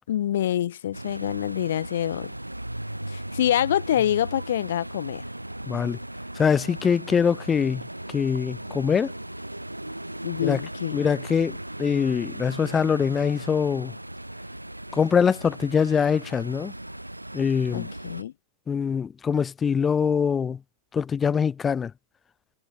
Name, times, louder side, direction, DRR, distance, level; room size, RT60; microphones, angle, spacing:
voice 1, 0.1-2.3 3.1-5.2 10.2-11.0 17.7-18.3, left 11 dB, 60° left, 3.3 m, -26 dB
sound 1, 0.9-18.2, right 1 dB, 85° right, 2.0 m, -37 dB
voice 2, 5.7-6.0 6.4-9.1 10.4-10.6 10.9-13.9 14.9-16.7 17.3-17.9 18.7-20.6 20.9-21.9, left 6 dB, 20° left, 0.6 m, -23 dB
figure-of-eight pair, 90°, 0 cm